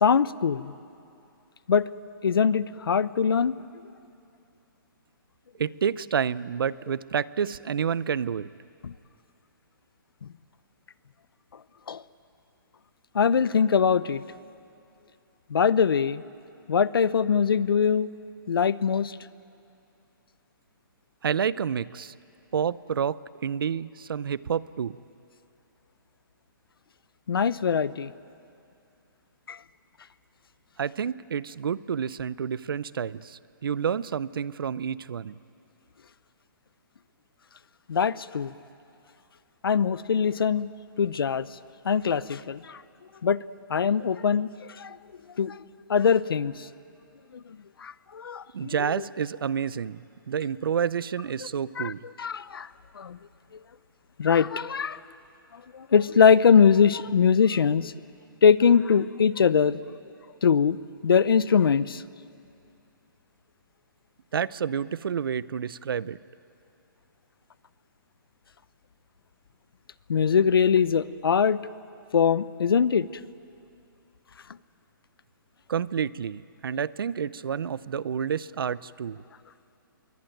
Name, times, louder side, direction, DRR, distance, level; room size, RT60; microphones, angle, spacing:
voice 1, 0.0-0.7 1.7-1.9 2.2-3.5 8.8-8.9 11.9-12.0 13.1-14.2 15.5-16.2 16.7-18.1 18.5-19.2 27.3-28.1 29.5-29.6 37.9-38.5 39.6-40.7 41.0-41.5 41.8-42.8 43.2-43.4 43.7-44.5 44.8-45.0 45.4-45.5 45.9-46.5 47.3-47.4 47.8-48.7 51.8-51.9 52.2-52.7 53.0-53.2 54.2-55.0 55.7-57.9 58.4-59.8 60.4-60.8 61.0-62.0 70.1-71.6 72.1-73.1, left 6 dB, 90° left, 17 dB, 0.8 m, -22 dB
voice 2, 5.6-8.5 21.2-22.1 22.5-25.0 30.8-35.4 48.5-52.0 64.3-66.2 75.7-79.2, right 7 dB, 75° right, 19 dB, 0.7 m, -29 dB
26.0 x 22.5 x 9.2 m, 2.7 s
hypercardioid pair, 160°, 12 cm